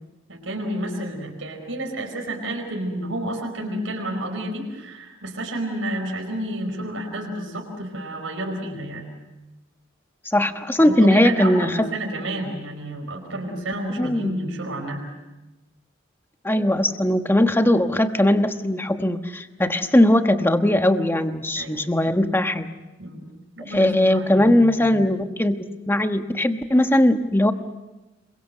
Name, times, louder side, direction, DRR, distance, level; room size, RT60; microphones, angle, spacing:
voice 1, 0.3-9.1 10.8-15.1 21.6-22.1 23.0-23.3 23.6-25.1, right 1 dB, 75° right, 2 dB, 4.7 m, -30 dB
voice 2, 10.3-11.9 14.0-14.3 16.4-22.7 23.7-27.5, left 1 dB, 10° left, 7 dB, 1.2 m, -19 dB
28.0 x 23.0 x 6.7 m, 1.1 s
head